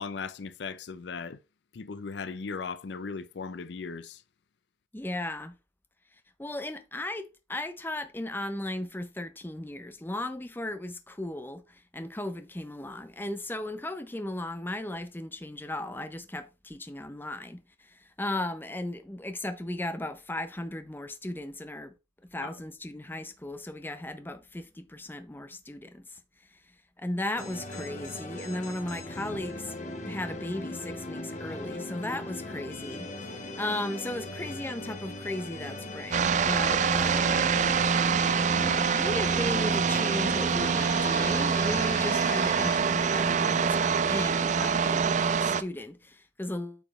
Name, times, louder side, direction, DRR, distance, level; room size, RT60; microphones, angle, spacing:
voice 1, 0.0-1.4 1.7-4.2 22.4-22.5, left 5 dB, 70° left, 0.5 m, -37 dB
voice 2, 4.9-5.6 6.4-21.9 22.2-26.2 26.5-26.6 27.0-29.8 30.1-37.5 38.8-46.8, left 1 dB, 10° left, 0.6 m, -36 dB
sound 1, 27.4-42.8, left 2 dB, 40° left, 1.1 m, -39 dB
sound 2, 36.1-45.6, right 6 dB, 40° right, 0.4 m, -25 dB
8.6 x 5.0 x 3.1 m
head